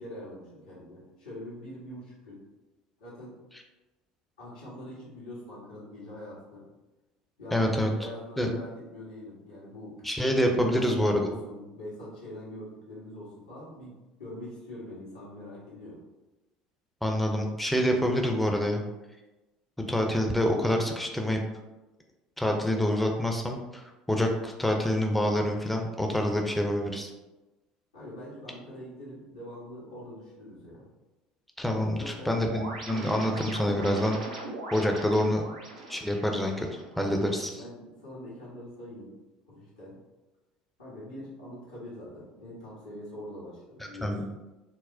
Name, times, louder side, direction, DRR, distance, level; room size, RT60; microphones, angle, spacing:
voice 1, 0.0-2.4 3.0-3.4 4.4-6.7 7.4-10.1 10.3-16.0 27.9-30.9 31.8-32.4 37.5-39.2 39.5-40.0 40.8-44.2, left 1 dB, 90° left, -8 dB, 1.2 m, -43 dB
voice 2, 7.5-7.9 8.4-8.5 10.0-11.2 17.0-18.8 19.9-21.4 22.4-27.1 31.6-34.2 34.7-35.4 35.9-36.7 37.0-37.6 44.0-44.2, equal, 5° left, 2 dB, 0.6 m, -26 dB
sound 1, 32.4-37.4, right 2 dB, 85° right, 0.6 m, -40 dB
4.1 x 2.1 x 2.6 m, 1.1 s
hypercardioid pair, 70°, 4 cm